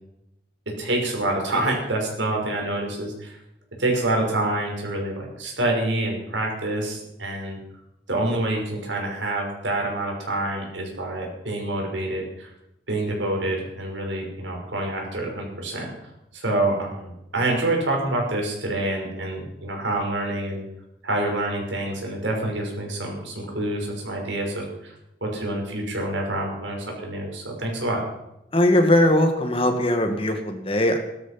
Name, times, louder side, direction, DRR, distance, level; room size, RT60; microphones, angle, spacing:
voice 1, 0.7-3.4 3.8-7.6 8.1-12.5 12.9-15.9 16.3-20.6 21.0-24.9 25.2-28.0, right 1 dB, 80° right, 1 dB, 6.1 m, -27 dB
voice 2, 28.5-31.0, left 1 dB, 30° left, 6 dB, 2.0 m, -20 dB
17.5 x 13.0 x 6.0 m, 0.86 s
head